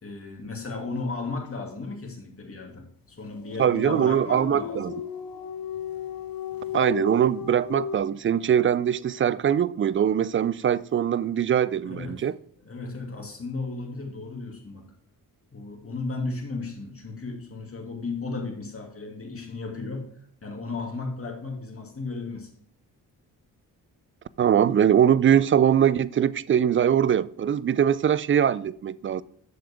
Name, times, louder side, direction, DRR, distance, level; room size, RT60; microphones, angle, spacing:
voice 1, 0.0-4.9 11.8-12.3 12.6-14.9 15.5-20.1 20.4-22.5, left 3 dB, 35° left, 2.5 m, -35 dB
sound 1, 3.2-8.0, left 8 dB, 55° left, 1.2 m, -35 dB
voice 2, 3.6-4.9 6.7-12.3 24.4-29.2, right 9 dB, 30° right, 0.4 m, -22 dB
7.8 x 6.5 x 3.5 m
supercardioid pair, 55°, 40 cm